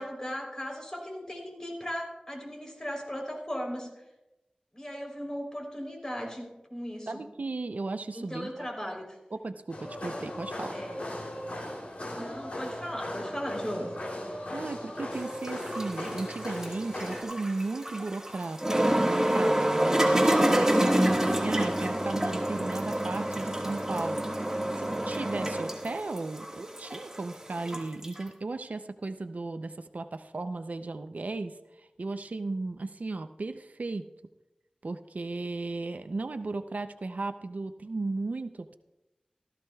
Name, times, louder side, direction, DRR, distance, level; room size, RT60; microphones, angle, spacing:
voice 1, 0.0-3.9 4.7-7.2 8.1-9.1 10.7-11.0 12.1-13.9, equal, 25° left, 0 dB, 3.4 m, -37 dB
voice 2, 7.1-8.7 9.3-10.8 14.5-24.3 24.8-34.0 34.8-38.8, right 3 dB, 80° right, 9 dB, 0.5 m, -35 dB
sound 1, 9.7-17.2, left 1 dB, 65° left, 3.0 m, -37 dB
sound 2, 15.1-28.2, right 1 dB, 20° right, 1.6 m, -28 dB
16.0 x 14.0 x 2.3 m, 1.0 s
wide cardioid pair, 60°, 3 cm